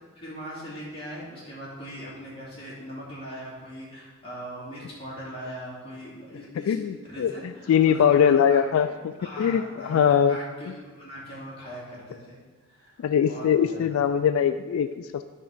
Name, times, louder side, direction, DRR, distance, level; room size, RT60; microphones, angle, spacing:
voice 1, 0.2-8.9 9.2-10.7 11.0-12.4 12.7-14.2, equal, 25° left, -7 dB, 2.5 m, -40 dB
voice 2, 6.7-7.3 7.7-10.4 13.0-15.2, left 8 dB, 85° left, 11 dB, 0.3 m, -22 dB
10.0 x 3.5 x 6.2 m, 1.4 s
head